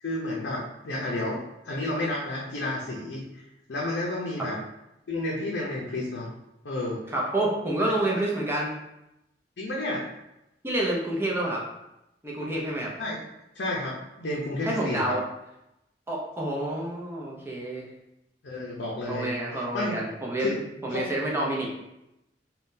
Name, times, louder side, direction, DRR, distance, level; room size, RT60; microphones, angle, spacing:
voice 1, 0.0-3.4 3.7-4.6 5.1-6.3 6.6-7.0 7.8-7.9 9.6-10.0 13.0-13.2 13.5-15.2 18.4-20.0 20.4-20.5 20.9-21.0, left 1 dB, 75° left, -4 dB, 0.5 m, -31 dB
voice 2, 7.1-8.7 10.6-11.6 12.2-12.9 14.6-15.2 16.1-17.8 19.1-20.6 20.8-21.7, right 1 dB, 15° right, -3 dB, 0.6 m, -28 dB
3.5 x 2.2 x 2.6 m, 0.89 s
head